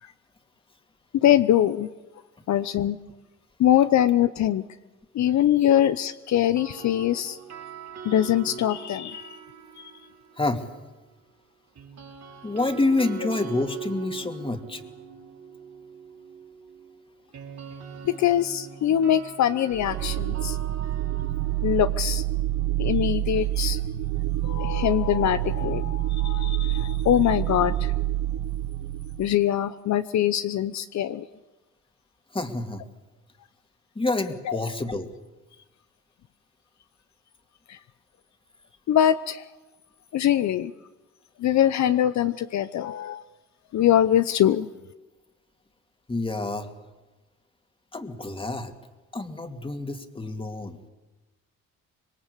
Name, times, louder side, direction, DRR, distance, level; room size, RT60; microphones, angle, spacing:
voice 1, 1.1-1.9 2.5-3.0 3.6-4.6 5.1-7.4 8.0-9.4 9.8-9.9 18.0-20.6 21.6-22.2 22.8-23.8 24.4-27.9 29.2-31.3 34.5-34.6 37.7-37.8 38.9-39.5 40.1-40.7 41.4-43.2 43.7-44.7, left 11 dB, 65° left, 12 dB, 0.9 m, -23 dB
sound 1, 6.3-10.5 11.7-23.6, right 7 dB, 60° right, 4.5 m, -42 dB
voice 2, 12.4-14.8 32.3-32.8 34.0-35.1 46.1-46.7 47.9-48.7 49.1-50.8, left 2 dB, 15° left, 6 dB, 2.6 m, -28 dB
sound 2, 19.7-29.4, right 15 dB, 80° right, 1.2 m, -27 dB
26.0 x 22.0 x 8.4 m, 1.1 s
cardioid pair, 90°, 30 cm